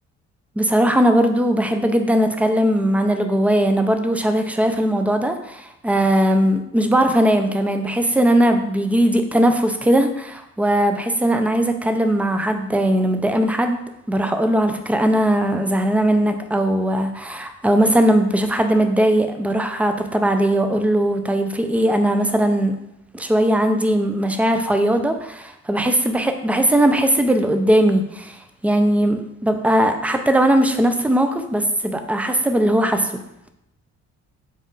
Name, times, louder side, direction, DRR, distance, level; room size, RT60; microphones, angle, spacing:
voice 1, 0.6-13.8 14.1-22.7 23.1-28.4 28.6-33.1, right 1 dB, 5° right, 7 dB, 0.3 m, -19 dB
4.2 x 2.4 x 3.6 m, 0.83 s
cardioid pair, 90°, 30 cm